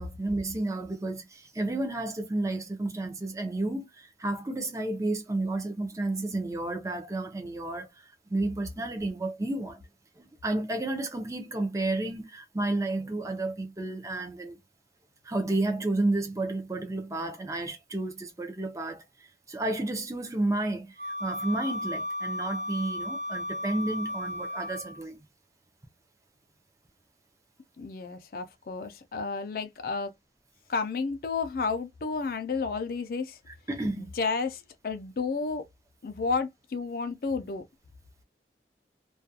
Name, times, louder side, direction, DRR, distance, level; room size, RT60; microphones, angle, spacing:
voice 1, 0.0-9.8 10.2-14.6 15.2-19.0 19.5-25.2 33.7-34.1, right 2 dB, 20° right, 0.5 m, -31 dB
Wind instrument woodwind instrument, 21.0-25.0, left 1 dB, 60° right, 0.6 m, -34 dB
voice 2, 27.8-30.1 30.7-33.4 34.0-35.7 36.0-37.6, left 4 dB, 55° left, 0.4 m, -31 dB
2.3 x 2.2 x 2.6 m
head